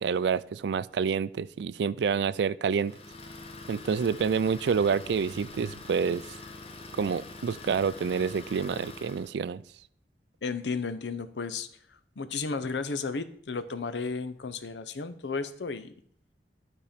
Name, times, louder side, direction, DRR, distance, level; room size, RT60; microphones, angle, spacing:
voice 1, 0.0-3.0 3.7-6.2 7.0-9.6, right 6 dB, 65° right, 18 dB, 0.3 m, -28 dB
Idling, 2.8-9.3, left 3 dB, 35° left, 0.9 m, -45 dB
voice 2, 10.4-11.7 12.2-15.9, left 4 dB, 75° left, 12 dB, 0.7 m, -33 dB
11.0 x 4.4 x 5.1 m, 0.62 s
head